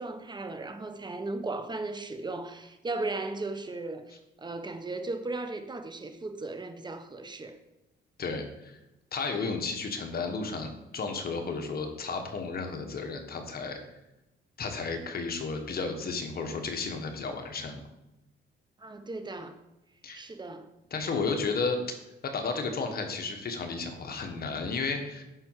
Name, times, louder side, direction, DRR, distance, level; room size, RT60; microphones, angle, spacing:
voice 1, 0.0-7.6 18.8-19.5 20.1-20.7, right 2 dB, 20° right, 7 dB, 1.1 m, -36 dB
voice 2, 8.2-8.8 9.1-13.8 14.6-17.8 20.0-20.2 20.9-22.0 22.2-25.2, left 4 dB, 50° left, 5 dB, 1.6 m, -33 dB
9.8 x 5.9 x 4.8 m, 0.94 s
cardioid pair, 90°, 20 cm